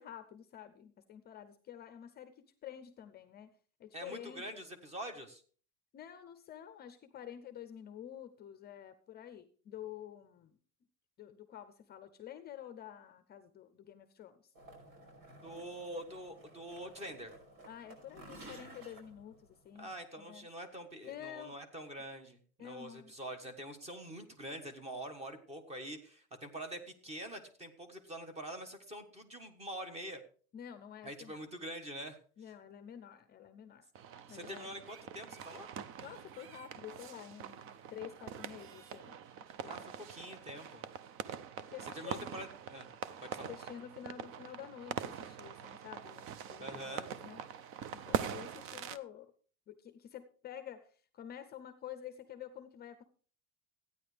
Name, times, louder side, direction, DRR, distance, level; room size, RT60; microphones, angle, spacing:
voice 1, 0.0-4.5 5.9-10.5 11.2-14.5 17.7-20.5 21.0-21.6 22.6-23.1 30.5-31.4 32.4-33.9 34.3-34.8 36.0-39.2 39.6-39.8 41.7-42.3 43.5-47.4 47.9-49.3 49.7-53.0, left 10 dB, 30° left, 10 dB, 0.6 m, -49 dB
voice 2, 3.9-5.4 15.4-17.3 19.8-30.2 31.0-32.2 34.3-35.7 39.7-40.8 41.9-42.9 43.2-43.5 46.6-47.1, right 1 dB, 20° right, 8 dB, 1.4 m, -45 dB
sound 1, 14.5-19.9, right 1 dB, 90° right, 5.4 m, -55 dB
sound 2, 34.0-49.0, right 8 dB, 40° right, 0.5 m, -43 dB
14.5 x 9.5 x 3.4 m, 0.42 s
cardioid pair, 160°, 35 cm